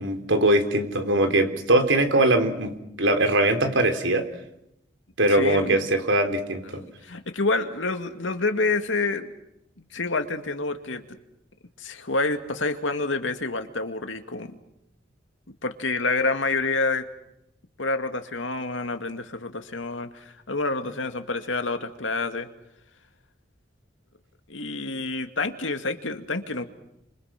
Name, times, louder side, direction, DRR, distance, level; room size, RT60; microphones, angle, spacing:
voice 1, 0.0-2.7 3.0-4.2 5.2-6.8, right 1 dB, 85° right, 6 dB, 3.8 m, -21 dB
voice 2, 5.3-5.8 6.7-9.3 9.8-11.2 11.8-14.6 15.6-17.0 17.8-22.5 24.5-26.6, left 3 dB, 85° left, 7 dB, 2.2 m, -28 dB
30.0 x 27.0 x 6.0 m, 0.82 s
head